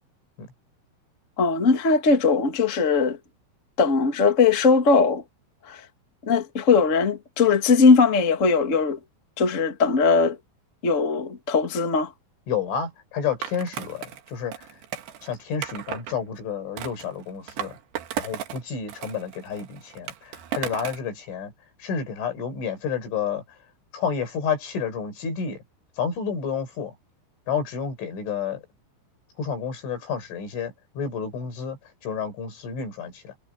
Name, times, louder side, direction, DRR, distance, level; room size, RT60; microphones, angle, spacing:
voice 1, 1.4-3.2 3.8-5.2 5.6-5.8 6.2-9.0 9.4-10.4 10.8-12.1, left 4 dB, 45° left, 0.9 m, -20 dB
voice 2, 12.5-14.8 15.2-17.8 18.2-21.5 21.8-23.4 23.9-25.6 26.0-26.9 27.5-28.6 29.4-33.4, left 6 dB, 80° left, 8.5 m, -30 dB
Skateboard, 13.4-16.1 16.8-18.6 18.9-21.1, right 10 dB, 65° right, 3.6 m, -35 dB
omnidirectional pair, 5.5 m